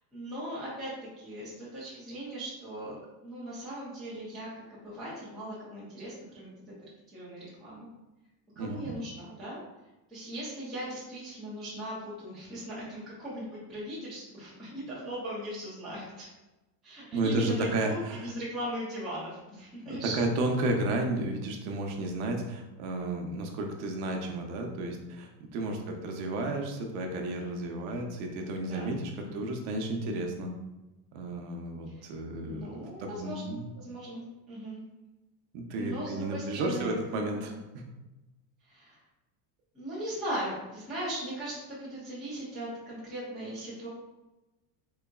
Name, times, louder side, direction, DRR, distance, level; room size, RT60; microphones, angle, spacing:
voice 1, 0.1-3.0 3.2-6.5 7.1-7.9 8.6-9.6 10.1-16.3 16.8-20.2 25.6-25.9 28.7-29.4 30.0-30.2 31.9-32.0 32.4-34.8 35.7-37.0 37.3-37.6 38.7-39.0 39.7-43.9, right 1 dB, ahead, -11 dB, 0.4 m, -39 dB
voice 2, 8.6-9.0 17.1-18.3 19.9-30.5 31.1-33.7 35.5-37.8, right 2 dB, 50° right, 2 dB, 0.6 m, -32 dB
3.9 x 3.4 x 2.2 m, 1.0 s
cardioid pair, 175°, 45 cm